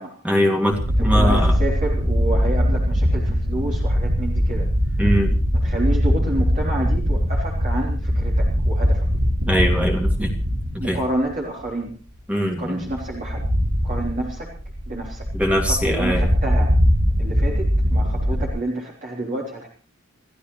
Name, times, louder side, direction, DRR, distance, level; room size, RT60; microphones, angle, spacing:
voice 1, 0.2-1.5 5.0-5.4 9.5-10.3 10.7-11.0 12.3-12.8 15.3-16.3, equal, 5° right, 1 dB, 2.4 m, -22 dB
sound 1, 0.7-11.3 11.6-11.7 12.8-18.5, equal, 90° right, 7.5 m, -21 dB
voice 2, 1.0-4.7 5.6-9.1 10.8-11.9 12.6-13.5 13.8-14.5 14.9-15.3 15.6-16.7 17.2-19.7, right 1 dB, 35° right, -3 dB, 3.6 m, -29 dB
29.0 x 15.0 x 3.2 m, 0.35 s
head